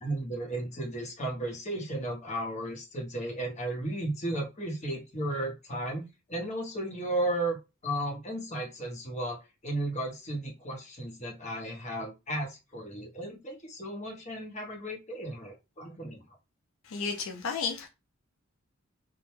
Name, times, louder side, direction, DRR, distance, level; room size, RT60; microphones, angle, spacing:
voice 1, 0.0-16.2, right 1 dB, 35° left, 0.8 m, -34 dB
voice 2, 16.8-17.9, left 5 dB, 75° left, 0.4 m, -32 dB
2.1 x 2.0 x 3.0 m
head